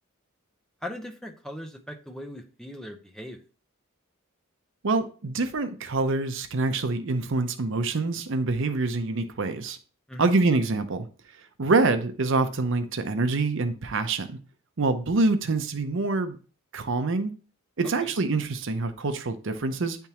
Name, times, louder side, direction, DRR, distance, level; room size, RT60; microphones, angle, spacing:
voice 1, 0.8-3.4 10.1-10.3 17.8-18.1, equal, 5° left, 3 dB, 0.7 m, -39 dB
voice 2, 4.8-9.8 10.2-11.1 11.6-14.4 14.8-16.4 16.7-17.3 17.8-20.0, right 3 dB, 60° right, 8 dB, 0.6 m, -25 dB
9.3 x 3.5 x 2.9 m, 0.37 s
head